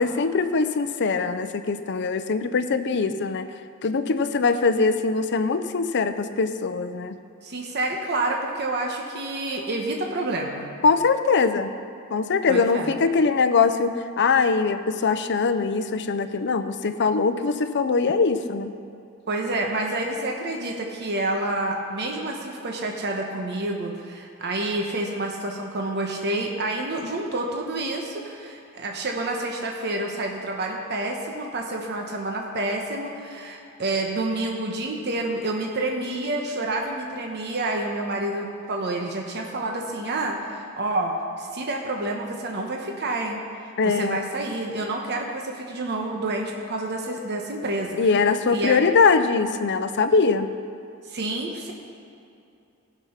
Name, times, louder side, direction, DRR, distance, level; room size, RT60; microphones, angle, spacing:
voice 1, 0.0-3.5 3.8-7.2 10.8-11.7 12.1-18.7 43.8-44.3 48.0-50.5, left 4 dB, 55° left, 10 dB, 0.6 m, -22 dB
voice 2, 7.4-10.7 12.5-12.9 19.3-43.4 43.8-48.0 48.5-48.8 51.0-51.7, right 2 dB, 50° right, 1 dB, 1.1 m, -28 dB
16.0 x 6.2 x 5.8 m, 2.7 s
head